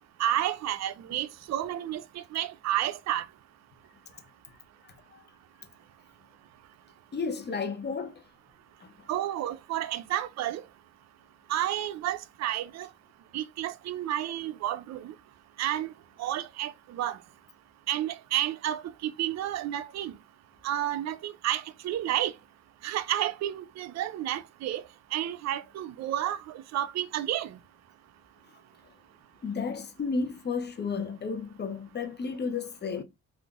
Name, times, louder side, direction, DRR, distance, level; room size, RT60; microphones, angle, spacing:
voice 1, 0.2-3.3 9.1-10.6 11.5-12.9 13.3-15.1 15.6-15.9 16.2-17.2 17.9-20.1 20.6-22.3 22.8-24.8 25.1-27.6, right 12 dB, 60° right, 0.5 m, -31 dB
voice 2, 4.8-5.2 7.1-8.2 8.8-8.9 29.4-33.0, left 5 dB, 35° left, 0.7 m, -33 dB
3.7 x 2.5 x 2.3 m
cardioid pair, 90°, 30 cm